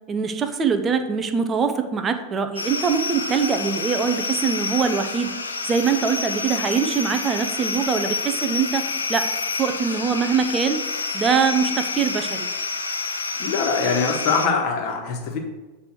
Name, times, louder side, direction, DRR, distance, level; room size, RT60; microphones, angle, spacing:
voice 1, 0.1-5.4 5.7-8.8 9.1-9.3 9.6-10.8 11.1-12.5, right 6 dB, 20° right, 8 dB, 0.6 m, -23 dB
sound 1, 2.6-14.5, left 4 dB, 75° left, 0.8 m, -28 dB
voice 2, 13.4-15.4, left 5 dB, 40° left, 1 dB, 1.4 m, -23 dB
8.1 x 3.4 x 6.1 m, 1.2 s
figure-of-eight pair, 90°, 0 cm